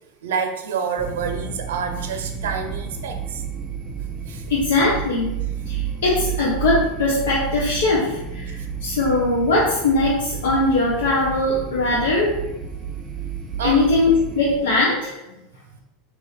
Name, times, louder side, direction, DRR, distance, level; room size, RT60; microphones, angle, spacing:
voice 1, 0.2-3.4 4.3-4.4 8.5-8.7 13.6-13.9, right 6 dB, 90° right, 5 dB, 0.5 m, -28 dB
sound 1, 1.0-14.6, right 7 dB, 10° right, 0.5 m, -31 dB
voice 2, 4.5-5.3 5.7-12.3 13.6-15.1, left 2 dB, 90° left, -5 dB, 0.8 m, -20 dB
4.2 x 2.8 x 4.1 m, 0.95 s
supercardioid pair, 130°, 0 cm